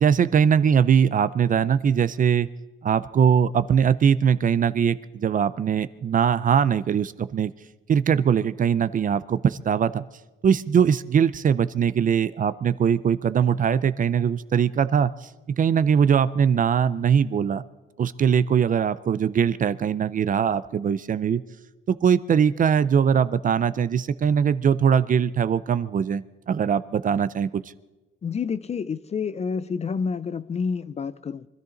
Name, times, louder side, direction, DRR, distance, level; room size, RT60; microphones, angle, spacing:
voice 1, 0.0-2.5 2.8-7.5 7.9-10.0 10.4-17.6 18.0-21.4 21.9-27.5, right 7 dB, 40° right, 0.4 m, -21 dB
voice 2, 28.2-31.5, left 5 dB, 30° left, 0.4 m, -28 dB
24.5 x 13.5 x 3.9 m
wide cardioid pair, 175°, 21 cm